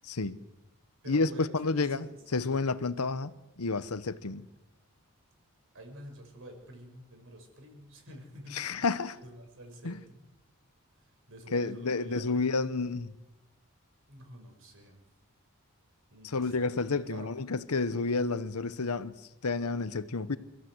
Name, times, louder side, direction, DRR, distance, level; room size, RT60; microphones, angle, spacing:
voice 1, 0.0-0.4 1.1-2.1 2.3-3.3 3.6-4.4 8.5-9.2 9.8-10.0 11.5-13.1 16.2-19.1 19.4-20.4, left 3 dB, 85° left, 1.0 m, -30 dB
voice 2, 1.0-2.1 2.6-2.8 5.7-8.9 9.1-10.3 11.0-12.5 14.1-15.0 16.1-17.3, right 1 dB, 65° right, 6.3 m, -49 dB
28.5 x 15.0 x 8.1 m
head